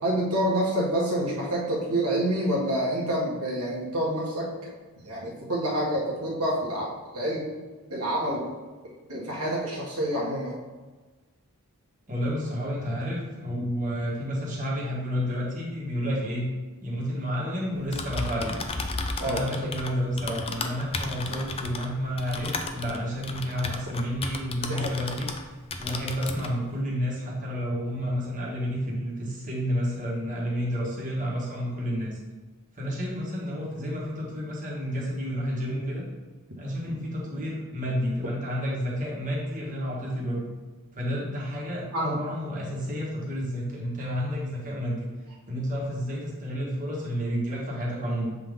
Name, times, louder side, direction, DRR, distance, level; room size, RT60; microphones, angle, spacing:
voice 1, 0.0-4.7 5.0-7.5 7.9-8.4 9.1-10.5 19.2-19.7 24.7-24.9 41.9-42.2, right 1 dB, 85° right, -5 dB, 1.7 m, -27 dB
voice 2, 12.1-16.5 16.8-18.6 19.2-25.3 25.8-32.2 32.8-36.0 36.6-40.5 40.9-45.1 45.5-48.4, equal, 35° right, -4 dB, 1.7 m, -30 dB
Typing, 17.8-25.4 25.7-26.5, left 3 dB, 25° left, 0.5 m, -34 dB
7.5 x 3.8 x 3.7 m, 1.3 s
head